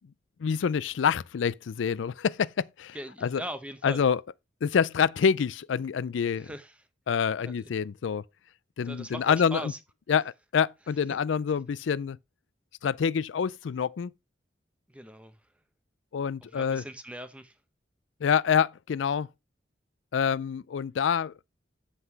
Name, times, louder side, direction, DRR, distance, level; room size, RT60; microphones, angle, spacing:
voice 1, 0.4-3.0 3.2-3.4 3.8-4.2 4.6-6.5 7.1-8.2 8.8-9.7 10.1-10.2 10.5-12.2 12.8-14.1 16.1-16.8 18.2-19.3 20.1-21.3, left 7 dB, 85° left, 0.4 m, -26 dB
voice 2, 2.9-4.0 6.3-6.9 7.4-7.7 8.8-9.8 11.1-11.2 14.9-15.5 16.4-17.6, right 1 dB, 5° right, 0.8 m, -40 dB
8.0 x 5.7 x 4.7 m
head